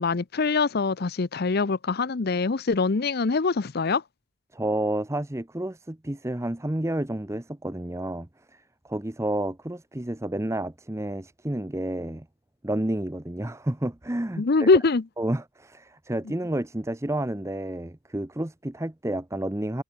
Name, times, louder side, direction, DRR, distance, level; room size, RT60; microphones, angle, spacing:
voice 1, 0.0-4.0 14.4-15.0, left 4 dB, 45° left, 0.6 m, -23 dB
voice 2, 4.5-12.3 12.6-14.7 15.2-19.8, right 1 dB, 15° right, 0.7 m, -30 dB
head